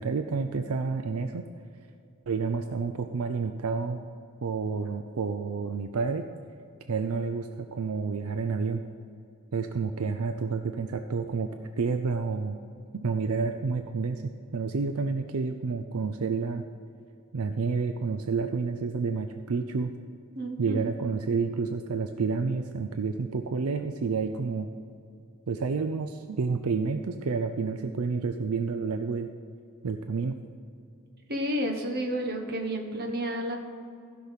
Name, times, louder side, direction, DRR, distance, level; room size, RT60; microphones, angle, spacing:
voice 1, 0.0-1.5 2.3-4.0 4.4-6.2 6.9-8.8 9.5-11.5 11.8-12.6 12.9-16.6 17.3-19.9 20.6-24.7 25.5-29.3 29.8-30.4, right 4 dB, 80° right, 7 dB, 0.5 m, -29 dB
voice 2, 20.4-20.9 31.3-33.6, equal, 45° right, 2 dB, 1.4 m, -31 dB
15.0 x 6.0 x 5.7 m, 2.5 s
head